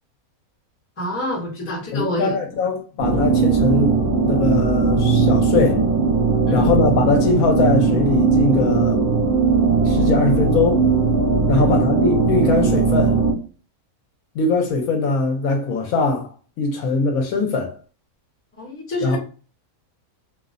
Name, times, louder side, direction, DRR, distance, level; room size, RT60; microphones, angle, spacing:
voice 1, 1.0-2.4 6.5-6.7 11.5-11.8 18.6-19.2, left 1 dB, 15° left, 0.6 m, -27 dB
voice 2, 1.9-5.8 6.5-9.0 9.9-10.9 11.5-13.2 14.3-16.3 16.6-17.8 19.0-19.2, left 3 dB, 75° left, 1.0 m, -21 dB
sound 1, 3.0-13.3, right 4 dB, 50° right, 0.8 m, -18 dB
2.6 x 2.0 x 2.4 m
omnidirectional pair, 1.6 m